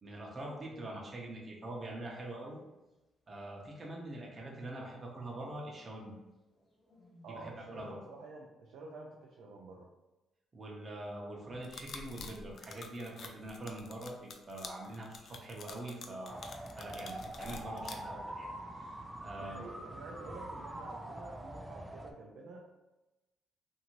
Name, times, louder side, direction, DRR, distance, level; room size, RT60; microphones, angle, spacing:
voice 1, 0.0-2.6 3.3-6.1 7.3-8.0 10.5-16.4 16.7-18.5 18.8-18.9 19.2-19.6, right 1 dB, 35° right, -2 dB, 0.7 m, -44 dB
sound 1, 1.6-2.5 3.8-5.1 6.5-8.1, left 2 dB, 40° left, 0.8 m, -61 dB
voice 2, 7.2-9.9 19.2-22.8, right 3 dB, 85° right, -1 dB, 0.4 m, -49 dB
sound 2, 11.6-17.9, left 4 dB, 60° left, 0.3 m, -47 dB
sound 3, 16.3-22.1, right 1 dB, 15° right, 0.3 m, -44 dB
2.6 x 2.6 x 2.9 m, 1.0 s
cardioid pair, 90°, 0 cm